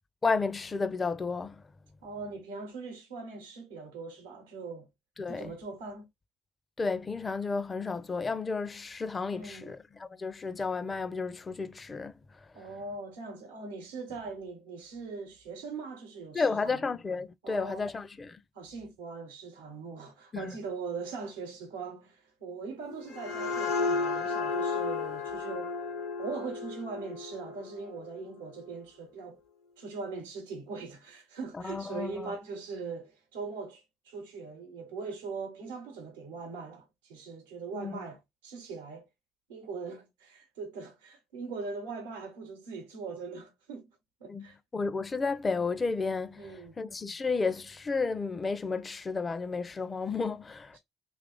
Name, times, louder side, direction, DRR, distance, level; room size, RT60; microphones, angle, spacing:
voice 1, 0.2-1.6 5.2-5.5 6.8-12.1 16.3-18.4 20.3-20.5 31.6-32.3 37.7-37.9 44.3-44.4 44.7-50.8, left 4 dB, 30° left, 0.4 m, -32 dB
voice 2, 2.0-4.9 5.3-6.1 9.3-9.7 12.5-16.9 17.4-17.9 18.5-25.7 26.2-29.4 29.8-39.1 39.5-43.9 44.2-44.6 46.4-46.8, right 4 dB, 90° right, 0.8 m, -41 dB
sound 1, 22.9-28.3, left 4 dB, 75° left, 0.8 m, -33 dB
2.9 x 2.5 x 3.7 m
hypercardioid pair, 55°, 0 cm